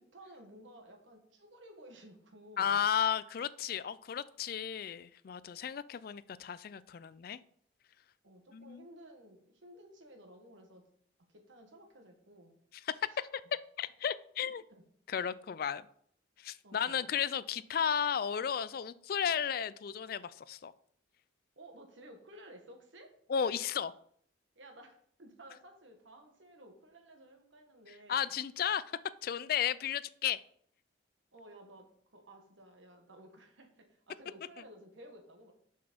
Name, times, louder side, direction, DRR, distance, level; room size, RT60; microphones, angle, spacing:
voice 1, 0.1-2.8 8.2-10.8 11.3-12.6 13.1-13.2 14.4-14.8 16.6-17.1 21.5-23.1 24.5-28.3 31.3-35.5, right 1 dB, 85° right, 4 dB, 1.6 m, -55 dB
voice 2, 2.6-7.4 8.5-8.8 13.2-13.3 13.8-14.6 15.1-15.9 16.4-20.7 23.3-23.9 28.1-30.4, left 8 dB, 50° left, 17 dB, 0.3 m, -34 dB
6.5 x 6.0 x 5.2 m, 0.65 s
head